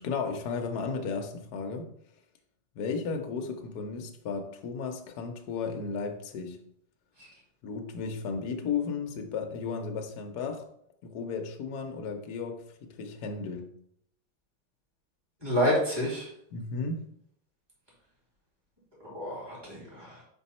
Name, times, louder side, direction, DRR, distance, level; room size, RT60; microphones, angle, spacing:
voice 1, 0.0-1.9 2.7-6.7 7.6-10.7 11.0-13.7 16.5-17.0, left 5 dB, 60° left, 1.2 m, -34 dB
voice 2, 15.4-16.3 19.0-20.2, equal, 10° right, 2.5 m, -29 dB
5.4 x 4.6 x 4.2 m
omnidirectional pair, 2.1 m